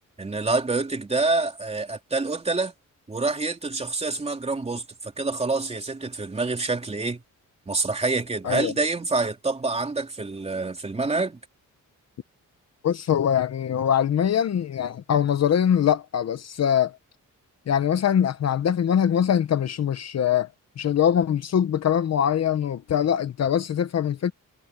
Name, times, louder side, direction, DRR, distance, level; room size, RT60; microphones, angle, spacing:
voice 1, 0.2-2.7 3.1-7.2 7.7-11.4, right 3 dB, 20° right, 3.4 m, -27 dB
voice 2, 12.8-17.0 17.7-20.5 20.8-24.3, left 9 dB, 55° left, 0.9 m, -23 dB
wide cardioid pair, 170°, 32 cm